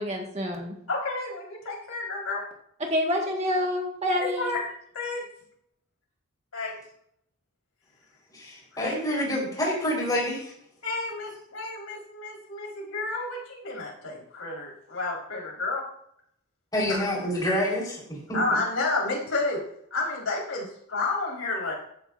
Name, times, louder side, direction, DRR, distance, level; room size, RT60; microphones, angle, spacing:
voice 1, 0.0-0.7 2.8-4.5, left 1 dB, 30° right, 0 dB, 1.6 m, -27 dB
voice 2, 0.9-2.4 4.2-4.6 4.9-5.2 6.5-6.8 8.7-8.9 10.8-15.8 16.9-17.1 18.3-19.6 19.9-21.7, left 3 dB, 75° left, -3 dB, 4.4 m, -30 dB
voice 3, 8.3-10.5 16.7-18.4, equal, 15° left, -3 dB, 4.3 m, -27 dB
15.0 x 10.5 x 2.6 m, 0.70 s
head